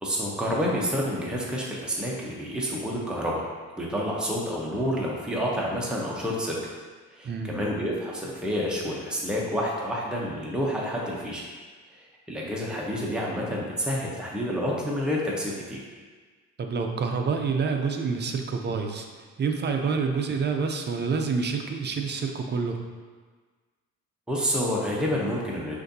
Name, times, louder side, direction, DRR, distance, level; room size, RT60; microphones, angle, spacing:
voice 1, 0.0-3.4 3.8-6.6 7.1-11.4 11.9-15.8 24.3-25.8, equal, 5° right, -4 dB, 0.8 m, -29 dB
voice 2, 7.2-7.6 16.6-19.1 19.4-22.8, right 5 dB, 35° right, 4 dB, 0.5 m, -27 dB
6.3 x 2.6 x 2.7 m, 1.4 s
cardioid pair, 90°, 30 cm